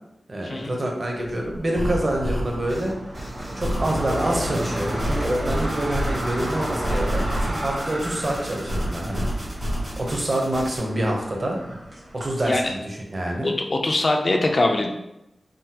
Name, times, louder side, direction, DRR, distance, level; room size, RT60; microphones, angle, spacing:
voice 1, 0.3-2.9 3.5-9.3 10.0-11.6 12.1-13.5, right 1 dB, 45° right, 0 dB, 0.7 m, -26 dB
sound 1, 1.2-12.7, right 1 dB, 65° right, 1.1 m, -32 dB
sound 2, 1.7-10.8, equal, 80° right, 1.3 m, -30 dB
voice 2, 13.4-14.9, left 2 dB, 50° left, 3 dB, 0.3 m, -22 dB
3.6 x 2.0 x 2.8 m, 0.88 s
wide cardioid pair, 85°, 0 cm